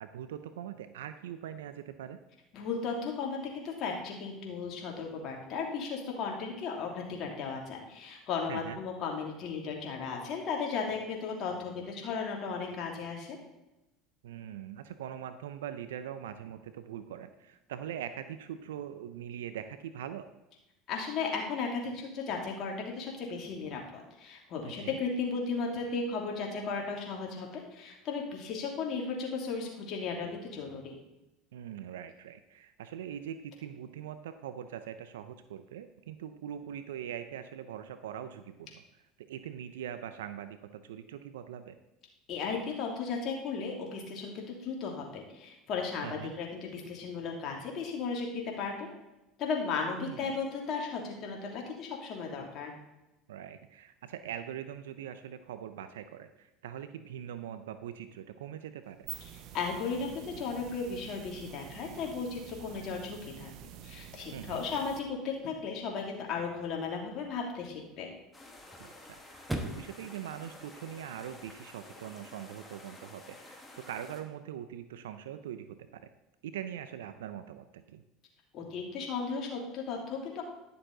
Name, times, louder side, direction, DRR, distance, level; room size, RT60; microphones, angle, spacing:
voice 1, 0.0-2.2 8.5-8.8 14.2-20.3 24.6-25.0 31.5-38.8 39.2-41.8 46.0-46.3 50.0-50.4 53.3-59.1 64.3-64.6 68.8-76.1 76.4-78.0, right 10 dB, 85° right, 11 dB, 0.5 m, -42 dB
voice 2, 2.5-13.4 20.9-31.0 42.3-48.9 49.4-52.7 59.5-63.5 63.8-68.1 78.5-80.4, left 5 dB, 55° left, 0 dB, 2.6 m, -35 dB
sound 1, 58.8-65.0, right 10 dB, 60° right, 0.9 m, -48 dB
Chirp tweet / Car / Slam, 61.7-71.6, right 1 dB, 10° right, 1.3 m, -47 dB
sound 2, 68.3-74.2, left 2 dB, 15° left, 2.0 m, -51 dB
11.0 x 6.8 x 3.9 m, 0.96 s
hypercardioid pair, 85°, 0 cm